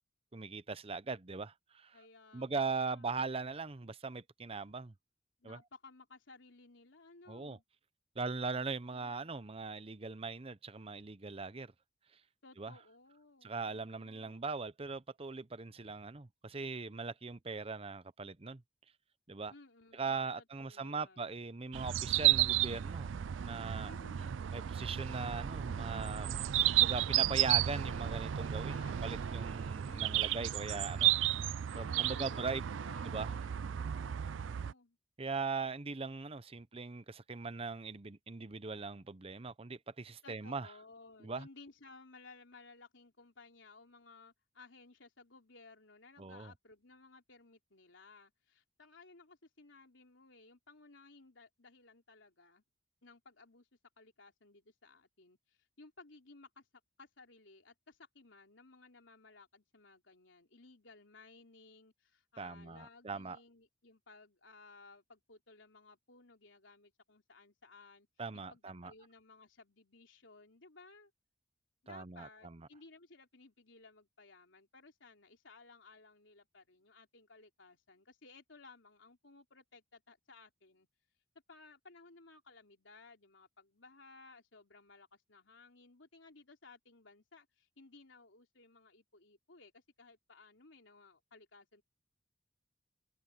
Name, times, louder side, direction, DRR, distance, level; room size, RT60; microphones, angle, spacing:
voice 1, 0.3-2.0 2.3-4.9 5.4-5.6 7.3-7.6 8.2-11.7 12.6-12.7 13.4-18.6 19.3-19.5 19.9-23.1 23.4-23.9 24.5-26.3 26.7-31.1 31.7-32.7 33.0-33.3 35.2-40.7 41.2-41.5 46.2-46.5 62.4-63.4 68.2-68.9 71.9-72.6, right 4 dB, 30° right, 0.8 m, -40 dB
voice 2, 1.9-3.1 5.4-7.6 12.4-14.5 19.5-21.3 23.8-24.4 28.7-30.8 31.7-32.4 32.7-35.0 40.2-52.6 53.0-53.7 54.0-56.7 57.0-68.1 68.3-71.1 71.8-80.9 81.5-91.8, left 3 dB, 85° left, 3.5 m, -59 dB
sound 1, 21.7-34.7, right 12 dB, 85° right, 0.4 m, -33 dB
head